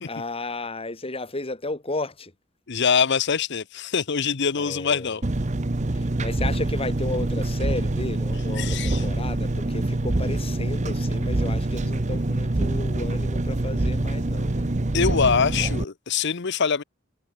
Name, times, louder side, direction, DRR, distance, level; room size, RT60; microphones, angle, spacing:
voice 1, 0.1-2.3 4.5-5.2 5.9-14.7, left 2 dB, 30° left, 3.1 m, -33 dB
voice 2, 2.7-5.2 8.6-9.1 14.9-16.8, left 6 dB, 60° left, 0.8 m, -24 dB
Engine, 5.2-15.8, right 2 dB, 35° right, 0.9 m, -25 dB
head